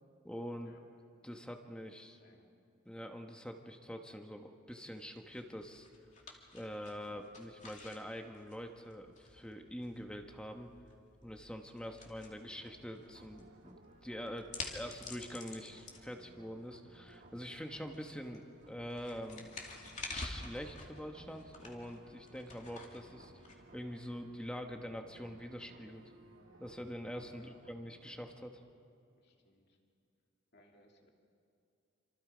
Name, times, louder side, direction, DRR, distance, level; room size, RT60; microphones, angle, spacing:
voice 1, 0.2-0.7 1.2-2.2 2.9-5.9 6.5-10.7 11.2-19.5 20.1-23.3 23.7-26.0 26.6-28.6, equal, 5° left, 4 dB, 1.3 m, -45 dB
voice 2, 2.1-2.5 7.0-7.2 11.8-12.0 12.4-12.6 14.5-15.0 27.3-27.6 29.2-29.8 30.5-31.1, left 1 dB, 50° left, 1 dB, 2.8 m, -65 dB
sound 1, 4.9-24.2, left 3 dB, 35° left, 2.6 m, -51 dB
sound 2, 12.5-27.5, right 3 dB, 70° right, 1.1 m, -63 dB
sound 3, 12.6-28.6, right 1 dB, 40° right, 2.0 m, -62 dB
27.5 x 26.5 x 5.2 m, 2.5 s
head